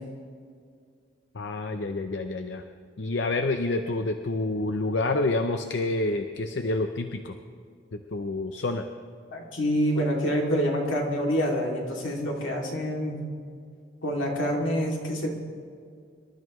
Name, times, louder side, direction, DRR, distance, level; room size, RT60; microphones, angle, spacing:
voice 1, 1.3-2.6 3.0-7.3 7.9-8.9, left 2 dB, 65° left, 6 dB, 0.6 m, -28 dB
voice 2, 9.3-13.2 14.0-15.3, equal, 85° left, -1 dB, 2.6 m, -27 dB
25.5 x 13.0 x 3.1 m, 2.2 s
head